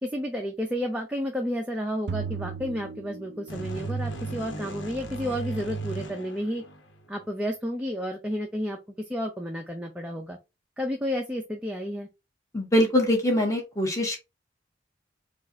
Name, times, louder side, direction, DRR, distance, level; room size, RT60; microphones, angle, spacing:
voice 1, 0.0-6.6 7.1-8.8 9.1-10.4 10.8-12.1, equal, 5° right, 1 dB, 0.5 m, -31 dB
sound 1, 2.1-3.9, right 6 dB, 60° right, 0.4 m, -36 dB
sound 2, 3.5-7.2, right 3 dB, 90° left, 1.1 m, -35 dB
voice 2, 12.5-14.2, left 1 dB, 15° left, 1 dB, 1.4 m, -23 dB
4.5 x 2.5 x 4.1 m, 0.25 s
head